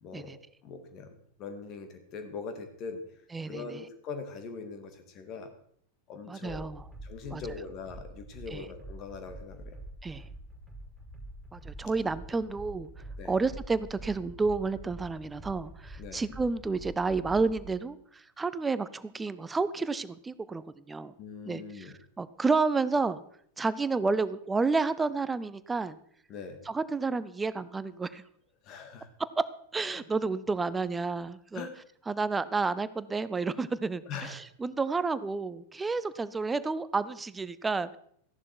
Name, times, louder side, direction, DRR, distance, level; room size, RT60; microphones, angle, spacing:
voice 1, 0.0-1.1 1.4-3.0 3.5-5.5 6.1-6.7 7.0-9.8 13.2-13.3 16.0-16.2 21.2-21.9 26.3-26.6 28.6-29.1 29.9-30.1 31.5-31.7 34.1-34.4, left 4 dB, 35° left, 7 dB, 2.1 m, -41 dB
voice 2, 3.3-3.8 6.3-6.8 7.3-7.4 8.5-8.6 10.0-10.2 11.5-12.9 13.2-21.1 21.5-23.2 23.6-26.0 26.7-28.2 29.4-29.5 29.7-31.7 32.1-38.0, right 4 dB, 10° right, 16 dB, 0.6 m, -30 dB
sound 1, 6.4-17.7, right 1 dB, 5° left, 3.9 m, -46 dB
14.5 x 11.0 x 4.5 m, 0.64 s
figure-of-eight pair, 90°, 0 cm